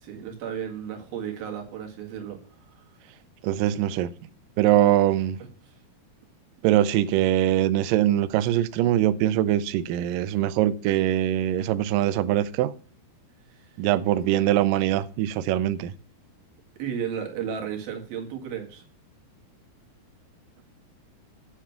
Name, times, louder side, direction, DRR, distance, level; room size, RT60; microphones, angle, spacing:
voice 1, 0.0-2.4 2.8-2.9 13.5-13.7 16.8-18.8, right 8 dB, 65° right, 3.7 m, -33 dB
voice 2, 3.4-4.1 4.6-5.4 6.6-12.7 13.8-15.9, right 12 dB, 90° right, 1.9 m, -22 dB
8.9 x 7.3 x 5.8 m
omnidirectional pair, 4.6 m